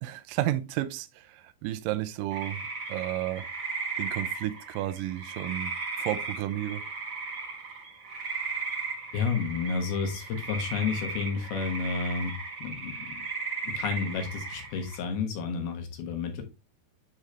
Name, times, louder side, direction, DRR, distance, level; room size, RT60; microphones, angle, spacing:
voice 1, 0.0-2.6 2.9-3.5 4.0-5.7 6.0-6.9, right 14 dB, 80° right, 2.0 m, -32 dB
sound 1, 2.3-15.0, right 4 dB, 55° right, 1.4 m, -36 dB
voice 2, 9.1-12.3 12.6-13.2 13.6-16.4, left 5 dB, 80° left, 3.3 m, -31 dB
9.1 x 3.9 x 3.3 m
omnidirectional pair, 4.4 m